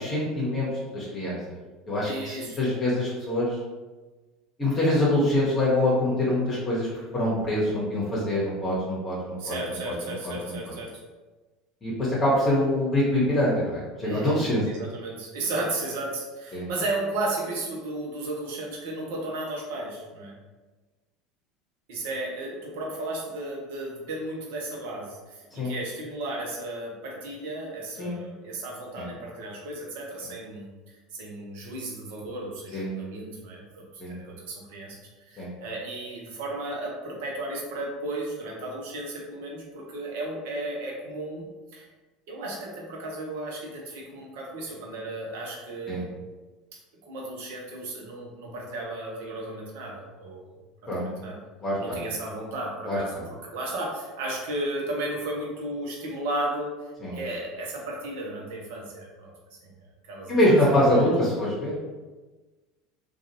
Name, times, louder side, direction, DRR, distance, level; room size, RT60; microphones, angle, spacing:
voice 1, 0.0-1.4 1.9-3.6 4.6-6.9 7.1-9.5 9.9-10.0 10.2-10.5 11.8-14.6 16.5-16.7 25.6-25.7 28.0-28.2 29.0-29.1 32.7-32.9 34.0-34.1 35.4-35.5 45.9-46.0 50.9-51.1 51.6-52.0 52.9-53.0 57.0-57.2 60.3-61.7, left 1 dB, 30° left, -7 dB, 1.0 m, -24 dB
voice 2, 2.1-2.6 9.4-11.0 14.0-20.3 21.9-30.6 31.1-35.0 35.3-41.5 41.7-41.9 42.3-46.1 47.0-50.4 51.0-51.4 51.8-56.7 57.1-59.8 60.1-61.1, right 2 dB, 65° right, -1 dB, 0.7 m, -34 dB
2.5 x 2.3 x 2.9 m, 1.3 s
figure-of-eight pair, 70°, 0 cm